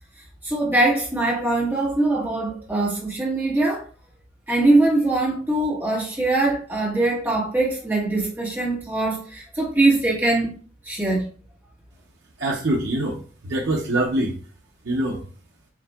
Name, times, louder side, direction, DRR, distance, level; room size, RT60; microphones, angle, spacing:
voice 1, 0.4-3.9 4.5-10.5 10.8-11.3, right 2 dB, 10° right, 1.6 m, -22 dB
voice 2, 12.4-14.3 14.8-15.2, right 1 dB, 75° right, 0.8 m, -24 dB
7.0 x 2.9 x 2.3 m
head